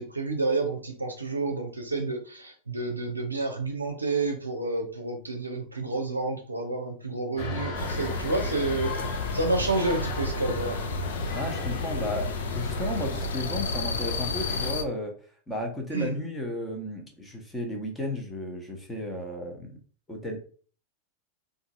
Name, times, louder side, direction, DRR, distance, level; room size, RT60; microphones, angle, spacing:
voice 1, 0.0-10.8 15.9-16.1, right 2 dB, 80° right, 3 dB, 0.5 m, -30 dB
sound 1, 7.4-14.7, left 2 dB, 45° left, 0.9 m, -35 dB
sound 2, 7.8-14.8, left 3 dB, 65° left, 0.4 m, -32 dB
voice 2, 11.3-15.1 15.5-19.8 20.1-20.4, left 1 dB, 10° left, 1 dB, 1.0 m, -33 dB
3.8 x 2.6 x 2.5 m, 0.42 s
figure-of-eight pair, 90°, 0 cm